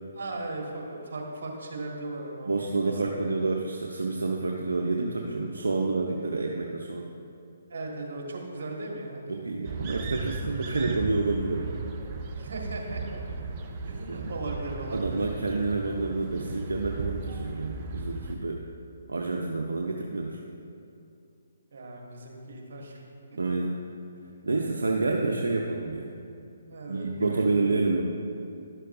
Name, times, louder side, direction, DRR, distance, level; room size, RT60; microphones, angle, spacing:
voice 1, 0.1-3.3 7.7-9.2 12.3-13.2 13.8-15.3 21.7-23.0 26.7-27.5, right 2 dB, 60° right, 0 dB, 1.6 m, -37 dB
voice 2, 2.5-7.1 9.3-11.8 14.1-14.3 14.9-18.6 19.1-20.4 23.4-23.7 24.4-26.1 26.9-28.0, right 3 dB, 80° right, 0 dB, 0.6 m, -28 dB
sound 1, 9.6-18.3, right 3 dB, 35° right, 0.6 m, -36 dB
11.5 x 6.5 x 2.6 m, 2.6 s
figure-of-eight pair, 140°, 0 cm